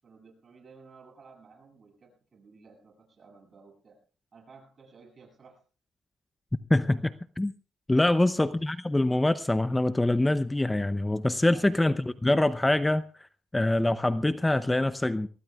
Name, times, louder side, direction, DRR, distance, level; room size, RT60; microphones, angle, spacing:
voice 1, 0.0-4.0 4.3-5.6 7.9-8.3 11.4-12.0, right 4 dB, 45° right, 1 dB, 7.8 m, -54 dB
voice 2, 6.7-7.5 7.9-13.0 13.5-15.3, left 1 dB, 10° left, 13 dB, 0.6 m, -24 dB
23.5 x 19.0 x 2.4 m, 0.39 s
cardioid pair, 90°, 0 cm